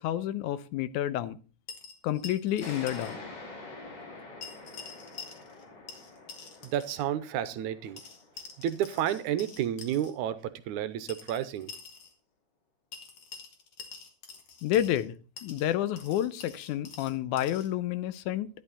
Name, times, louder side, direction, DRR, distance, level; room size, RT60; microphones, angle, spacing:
voice 1, 0.0-1.4 2.0-3.2 14.6-15.2 15.4-18.5, left 12 dB, 80° left, 15 dB, 2.2 m, -29 dB
sound 1, 1.7-3.2 3.4-3.5 4.4-5.6 5.9-7.1 8.0-10.1 11.1-12.1 12.9-15.1 15.4-17.7, left 5 dB, 55° left, 2.8 m, -47 dB
sound 2, 2.6-9.8, left 2 dB, 35° left, 2.8 m, -46 dB
voice 2, 6.6-8.0 8.6-11.8, right 10 dB, 80° right, 13 dB, 2.2 m, -31 dB
11.5 x 11.0 x 4.1 m, 0.34 s
omnidirectional pair, 3.5 m